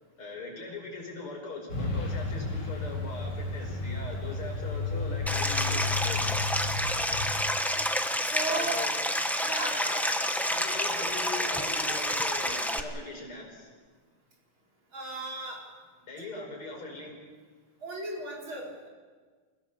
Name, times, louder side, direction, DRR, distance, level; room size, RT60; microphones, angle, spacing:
voice 1, 0.2-6.4 8.5-8.9 9.7-10.0 10.4-13.7 16.0-17.2, left 3 dB, 80° left, 0 dB, 6.1 m, -41 dB
Truck, 1.7-7.3, left 4 dB, 50° left, 3.6 m, -33 dB
Stream, 5.3-12.8, equal, ahead, 0.6 m, -29 dB
voice 2, 8.2-8.8 9.4-9.9 14.9-15.6 16.3-16.4 17.8-18.9, right 2 dB, 65° right, -2 dB, 5.4 m, -35 dB
29.5 x 16.5 x 7.0 m, 1.5 s
omnidirectional pair, 2.4 m